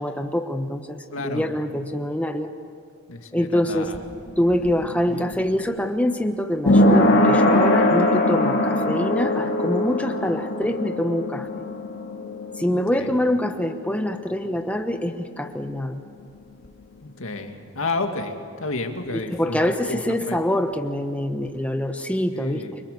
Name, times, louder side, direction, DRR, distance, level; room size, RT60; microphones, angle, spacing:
voice 1, 0.0-2.5 3.3-3.9 4.4-11.5 12.6-16.0 19.1-22.8, left 1 dB, 5° left, 6 dB, 1.1 m, -25 dB
voice 2, 1.1-1.5 3.1-4.0 12.7-13.1 17.0-19.6 19.9-20.0 20.3-20.4 22.3-22.7, left 3 dB, 70° left, 4 dB, 2.2 m, -31 dB
sound 1, 3.6-15.1 15.4-15.5, left 1 dB, 50° left, 2.9 m, -22 dB
29.5 x 24.5 x 6.8 m, 2.3 s
head